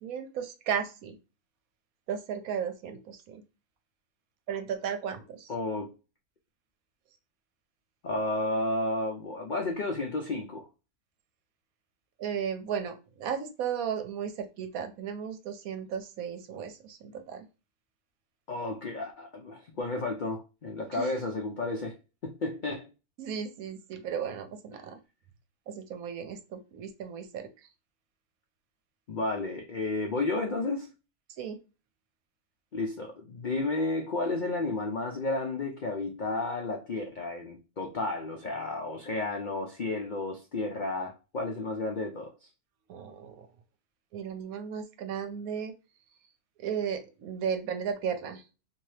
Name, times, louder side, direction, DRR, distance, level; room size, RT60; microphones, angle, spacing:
voice 1, 0.0-1.2 2.1-3.4 4.5-5.5 12.2-17.5 20.9-21.2 23.2-25.0 25.7-27.5 31.4-31.6 42.9-43.5 44.1-45.7 46.6-48.4, right 7 dB, 75° right, 8 dB, 1.1 m, -35 dB
voice 2, 5.5-5.9 8.0-10.7 18.5-21.9 22.2-22.9 29.1-30.9 32.7-42.5, left 2 dB, 70° left, 2 dB, 0.4 m, -32 dB
2.8 x 2.7 x 3.1 m, 0.31 s
omnidirectional pair, 1.6 m